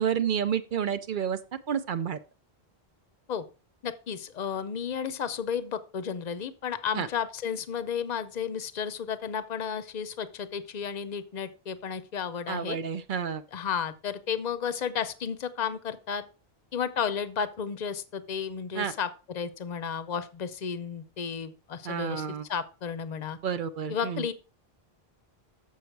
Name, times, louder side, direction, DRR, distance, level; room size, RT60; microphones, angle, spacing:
voice 1, 0.0-1.4 1.7-2.2 6.9-7.1 12.5-13.4 18.8-18.9 21.8-22.4 23.4-24.3, right 8 dB, 60° right, 12 dB, 0.7 m, -30 dB
voice 2, 3.8-12.8 13.5-16.2 16.7-23.4 23.9-24.3, left 7 dB, 50° left, 14 dB, 0.7 m, -33 dB
7.0 x 6.6 x 4.6 m, 0.33 s
omnidirectional pair, 1.0 m